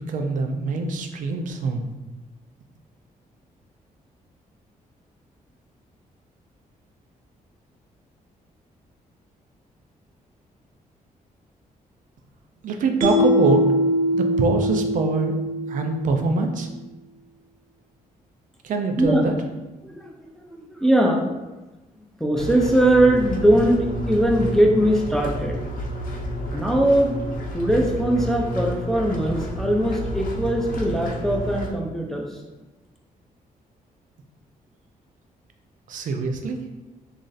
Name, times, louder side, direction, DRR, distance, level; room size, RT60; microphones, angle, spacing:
voice 1, 0.0-1.9 12.6-13.7 14.1-15.4 15.7-16.7 18.6-19.3 35.9-36.6, right 3 dB, 65° right, 5 dB, 0.5 m, -24 dB
Mallet percussion, 13.0-16.3, equal, 20° right, 0.7 m, -22 dB
voice 2, 19.8-21.2 22.2-25.6 26.5-27.2 27.5-32.3, right 1 dB, 5° left, 0 dB, 0.4 m, -20 dB
sound 1, 22.3-31.7, equal, 70° left, 0.6 m, -30 dB
3.2 x 2.5 x 3.9 m, 1.1 s
wide cardioid pair, 165°, 15 cm